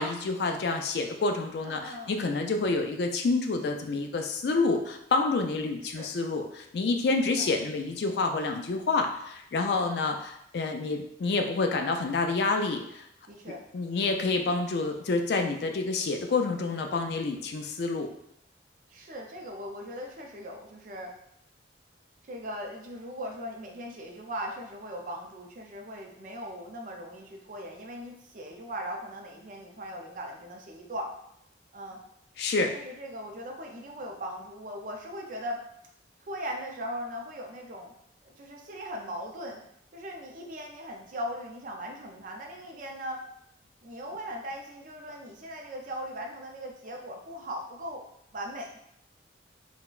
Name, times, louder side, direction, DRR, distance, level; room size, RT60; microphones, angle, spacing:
voice 1, 0.0-13.0 13.7-18.1 32.4-32.7, left 3 dB, 60° left, 4 dB, 0.4 m, -28 dB
voice 2, 1.6-2.3 5.8-6.1 7.1-7.5 13.3-13.6 18.9-21.1 22.2-31.1 31.7-32.0 32.7-35.6 36.2-37.9 38.2-39.6 39.9-43.2 43.8-48.0 48.3-48.7, equal, 45° right, 1 dB, 0.5 m, -39 dB
3.8 x 2.1 x 2.4 m, 0.74 s
head